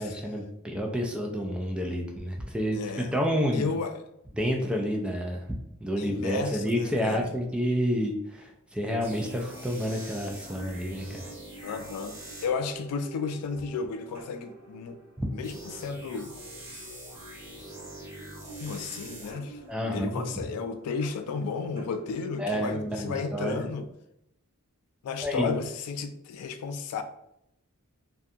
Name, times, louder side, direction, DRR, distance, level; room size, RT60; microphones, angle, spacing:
voice 1, 0.0-3.7 4.4-5.5 5.8-11.2 15.2-15.3 19.7-20.2 22.4-23.7 25.2-25.5, equal, 5° right, 0.3 m, -29 dB
voice 2, 2.7-3.2 3.5-4.0 6.0-7.3 11.6-15.0 15.3-16.3 18.6-19.6 19.9-23.9 25.0-27.0, left 5 dB, 85° left, 0.3 m, -33 dB
sound 1, 9.0-22.7, right 1 dB, 50° right, 1.4 m, -45 dB
2.6 x 2.2 x 2.4 m
head